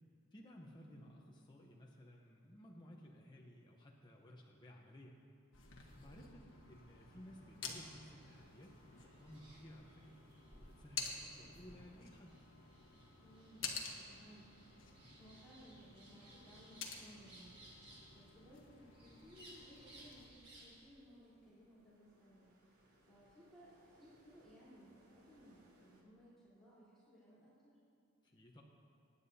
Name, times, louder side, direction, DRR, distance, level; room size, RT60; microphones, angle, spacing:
voice 1, 0.3-5.2 6.0-10.2 10.5-12.4 28.2-28.6, equal, 20° left, -1 dB, 0.8 m, -57 dB
sound 1, 5.5-20.3, left 5 dB, 60° left, 1.3 m, -51 dB
sound 2, 6.5-26.0, equal, 85° right, 2.5 m, -70 dB
sound 3, 8.2-20.8, right 1 dB, 30° right, 3.0 m, -63 dB
voice 2, 13.2-13.7 14.1-14.5 15.2-22.5 23.0-27.7, equal, ahead, -13 dB, 3.6 m, -61 dB
24.0 x 9.7 x 2.8 m, 2.5 s
head